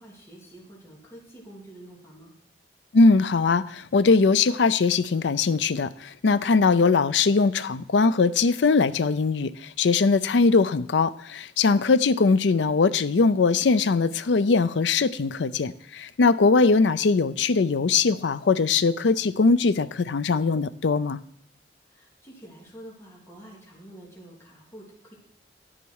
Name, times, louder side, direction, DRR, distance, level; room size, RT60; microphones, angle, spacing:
voice 1, 0.0-2.3 21.9-25.1, right 1 dB, 15° left, -4 dB, 3.1 m, -47 dB
voice 2, 2.9-21.2, left 4 dB, 80° left, 14 dB, 0.5 m, -21 dB
12.0 x 10.0 x 4.7 m, 0.67 s
head